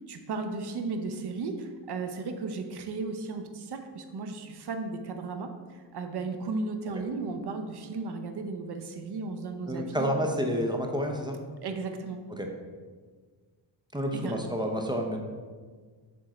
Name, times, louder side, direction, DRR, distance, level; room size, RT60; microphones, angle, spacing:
voice 1, 0.1-10.1 11.6-12.2 14.1-14.3, right 3 dB, 50° right, 6 dB, 0.8 m, -35 dB
voice 2, 9.7-11.4 12.4-12.5 13.9-15.2, equal, 10° right, 2 dB, 0.7 m, -29 dB
7.7 x 3.6 x 4.2 m, 1.5 s
cardioid pair, 105°, 49 cm